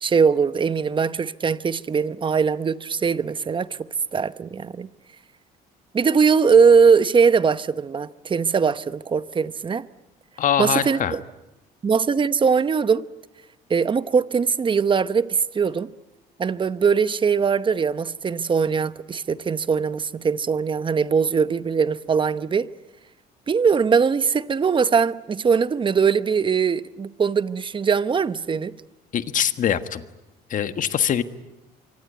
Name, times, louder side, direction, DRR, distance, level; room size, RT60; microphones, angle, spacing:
voice 1, 0.0-3.7 4.1-4.9 5.9-9.9 10.6-11.2 11.8-13.0 13.7-15.9 16.4-22.7 23.5-28.7, right 5 dB, 30° right, 0.9 m, -21 dB
voice 2, 10.4-11.2 29.1-30.0 30.5-31.2, left 9 dB, 50° left, 1.5 m, -23 dB
24.5 x 24.5 x 9.4 m
cardioid pair, 110°, 17 cm